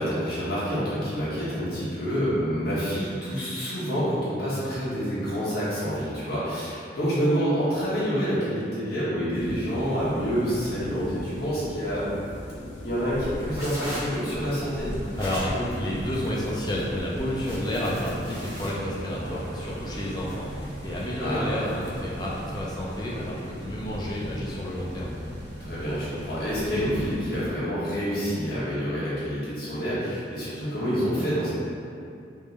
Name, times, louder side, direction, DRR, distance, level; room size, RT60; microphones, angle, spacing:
voice 1, 0.0-12.2 12.6-14.9 21.2-21.6 25.6-31.5, equal, 55° left, -10 dB, 1.2 m, -27 dB
sound 1, 9.3-27.5, left 1 dB, 80° left, 0.4 m, -40 dB
sound 2, 13.2-18.7, equal, 15° right, 0.9 m, -37 dB
sound 3, 14.6-27.1, right 1 dB, 65° right, 0.5 m, -39 dB
voice 2, 15.2-25.2, left 1 dB, 20° left, -5 dB, 0.5 m, -30 dB
3.5 x 2.6 x 3.1 m, 2.5 s
head